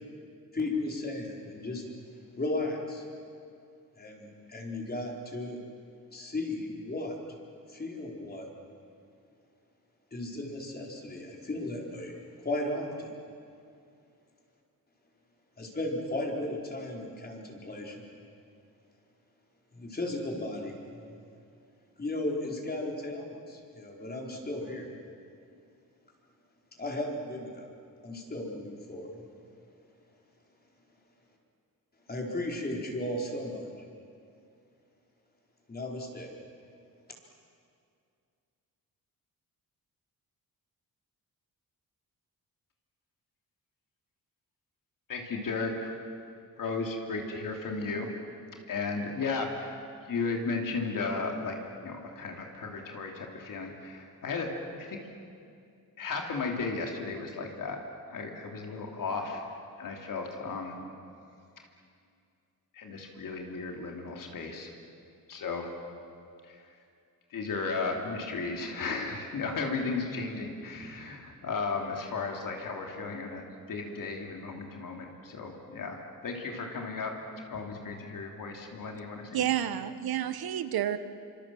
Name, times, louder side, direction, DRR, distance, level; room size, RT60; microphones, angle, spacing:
voice 1, 0.5-1.8 2.4-3.0 4.0-5.6 6.1-7.2 7.7-8.5 10.1-13.1 15.6-18.1 19.7-21.2 22.0-24.9 26.7-27.7 28.0-29.2 32.1-33.7 35.7-36.3, left 1 dB, 25° left, -1 dB, 4.5 m, -35 dB
voice 2, 45.1-45.9 46.6-48.1 48.7-49.8 50.1-51.6 51.8-55.0 56.0-57.8 58.1-59.4 59.8-60.8 62.7-64.7 65.3-65.7 66.4-66.8 67.3-76.0 76.2-77.2 77.5-79.6, left 4 dB, 65° left, 2 dB, 3.2 m, -35 dB
voice 3, 79.3-81.0, right 11 dB, 90° right, 12 dB, 1.3 m, -30 dB
28.0 x 26.0 x 7.8 m, 2.4 s
wide cardioid pair, 135°, 35 cm